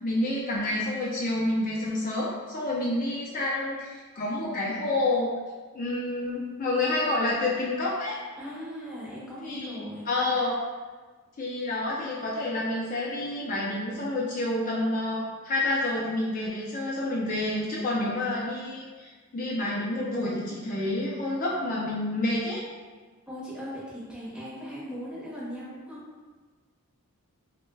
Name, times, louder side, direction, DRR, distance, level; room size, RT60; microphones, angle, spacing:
voice 1, 0.0-5.3 5.7-8.2 9.4-10.5 11.4-22.6, left 2 dB, 35° left, -4 dB, 0.4 m, -29 dB
voice 2, 8.4-10.1 23.3-26.0, equal, 5° right, -8 dB, 0.7 m, -38 dB
3.2 x 2.1 x 3.2 m, 1.4 s
head